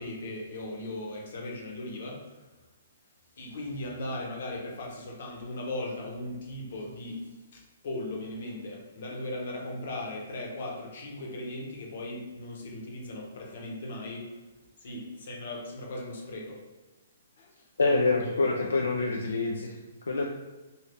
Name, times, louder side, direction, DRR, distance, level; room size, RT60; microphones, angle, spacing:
voice 1, 0.0-2.3 3.4-14.3 14.8-16.6 17.4-17.5 17.8-18.6, left 1 dB, 65° left, -1 dB, 0.9 m, -38 dB
voice 2, 17.8-19.8 20.1-20.2, left 3 dB, 90° left, 0 dB, 0.4 m, -26 dB
2.8 x 2.7 x 3.3 m, 1.2 s
hypercardioid pair, 145°, 0 cm